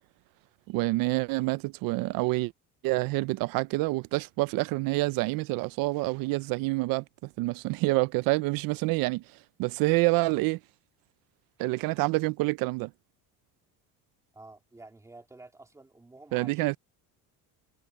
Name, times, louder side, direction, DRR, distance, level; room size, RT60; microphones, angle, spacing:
voice 1, 0.7-2.5 2.8-9.2 9.6-10.6 11.6-12.9 16.3-16.8, right 22 dB, 65° right, 0.5 m, -27 dB
voice 2, 14.3-16.6, right 2 dB, 10° right, 3.2 m, -50 dB
cardioid pair, 180°, 37 cm